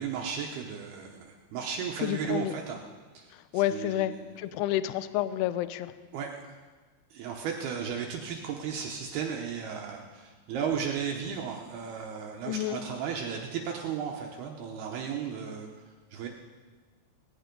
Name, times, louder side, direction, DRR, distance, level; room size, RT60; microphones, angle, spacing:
voice 1, 0.0-2.8 3.1-3.3 3.5-4.3 6.1-6.6 7.1-16.3, right 7 dB, 70° right, 1 dB, 2.5 m, -35 dB
voice 2, 2.0-2.5 3.5-5.9 12.5-12.8, left 13 dB, 90° left, 13 dB, 2.3 m, -29 dB
18.5 x 15.0 x 5.3 m, 1.4 s
omnidirectional pair, 5.5 m